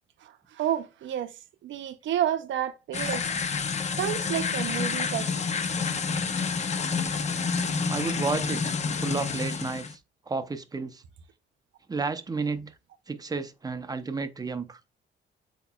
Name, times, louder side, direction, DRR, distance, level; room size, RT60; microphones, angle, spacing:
voice 1, 0.2-3.3 3.9-5.4, right 11 dB, 70° right, 0.6 m, -30 dB
sound 1, 2.9-9.9, left 5 dB, 35° left, 0.6 m, -29 dB
voice 2, 7.9-10.0 10.3-11.0 11.9-12.7 13.1-14.8, right 4 dB, 20° right, 0.6 m, -32 dB
7.9 x 2.9 x 2.3 m
cardioid pair, 90°, 20 cm